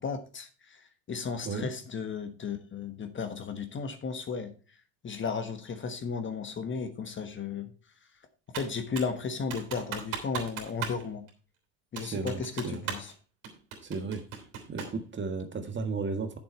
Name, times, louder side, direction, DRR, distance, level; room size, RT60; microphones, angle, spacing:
voice 1, 0.0-4.5 5.0-7.7 8.5-11.2 11.9-13.1, left 5 dB, 25° left, 8 dB, 1.3 m, -35 dB
Computer keyboard, 8.5-9.2 9.5-11.0 11.3-11.4 12.0-13.1 13.4-15.0, right 7 dB, 60° right, 3.2 m, -38 dB
voice 2, 12.0-12.8 13.8-14.2 14.7-16.4, right 4 dB, 25° right, 7 dB, 1.6 m, -34 dB
8.4 x 7.2 x 4.4 m, 0.37 s
hypercardioid pair, 90°, 43 cm